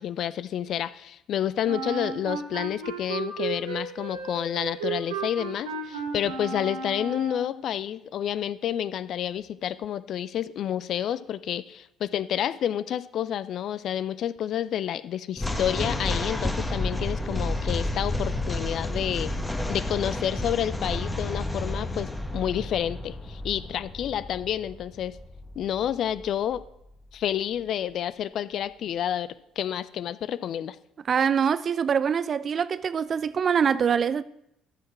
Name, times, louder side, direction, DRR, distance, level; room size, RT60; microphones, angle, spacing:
voice 1, 0.0-19.3 19.7-25.2 25.6-26.6 27.1-30.8, left 10 dB, 55° left, 0.4 m, -29 dB
Wind instrument woodwind instrument, 1.6-7.6, right 5 dB, 80° right, 1.3 m, -34 dB
Piano falling down the stairs, 15.4-26.7, left 2 dB, 15° left, 1.1 m, -31 dB
voice 2, 31.1-34.2, right 7 dB, 45° right, 0.4 m, -24 dB
12.5 x 6.5 x 4.3 m
figure-of-eight pair, 50°, 0 cm